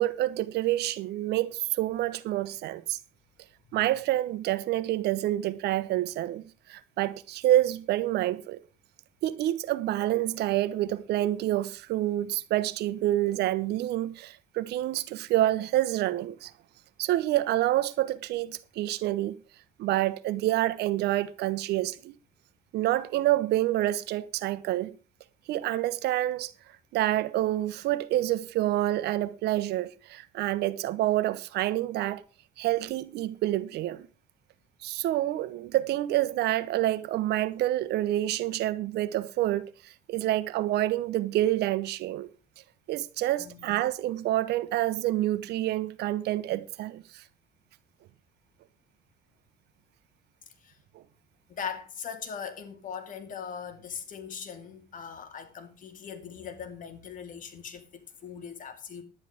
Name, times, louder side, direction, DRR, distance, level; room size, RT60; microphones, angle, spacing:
voice 1, 0.0-3.0 3.7-8.6 9.2-16.5 17.0-19.3 19.8-22.2 22.7-24.9 25.5-26.5 26.9-32.2 32.6-34.1 34.8-42.3 42.9-47.2 50.9-51.0, right 14 dB, 80° right, 1.0 m, -28 dB
voice 2, 51.5-59.0, left 7 dB, 50° left, 2.5 m, -40 dB
11.0 x 10.0 x 5.0 m
cardioid pair, 110°, 17 cm